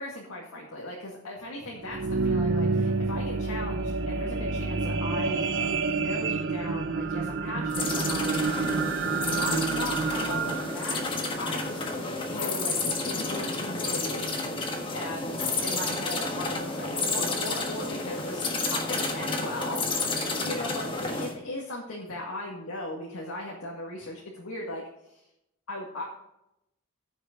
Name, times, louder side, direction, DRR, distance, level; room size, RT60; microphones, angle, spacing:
voice 1, 0.0-5.4 5.9-8.5 9.2-11.8 12.3-14.6 14.9-24.8 25.7-26.0, left 1 dB, 90° left, -3 dB, 2.0 m, -38 dB
sound 1, 1.7-12.2 12.8-12.9, right 4 dB, 55° right, 0.7 m, -29 dB
sound 2, 7.7-21.3, left 3 dB, 25° left, 1.4 m, -31 dB
14.5 x 6.5 x 3.8 m, 0.83 s
head